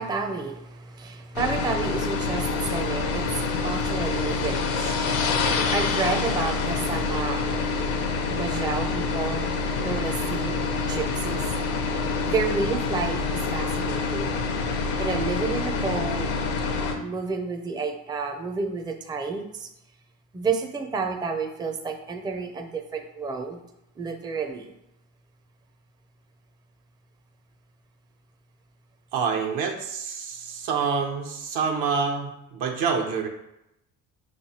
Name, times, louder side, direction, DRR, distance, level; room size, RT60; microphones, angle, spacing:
voice 1, 0.0-7.6 8.3-9.5 9.8-11.4 12.2-14.4 15.0-16.3 17.0-19.7 20.3-23.6 24.0-24.7, right 4 dB, 10° right, 4 dB, 0.4 m, -30 dB
sound 1, 1.4-17.0, left 4 dB, 80° left, 0.8 m, -26 dB
voice 2, 29.1-33.3, right 5 dB, 80° right, 2 dB, 0.9 m, -27 dB
5.4 x 3.2 x 2.8 m, 0.85 s
supercardioid pair, 90°, 35 cm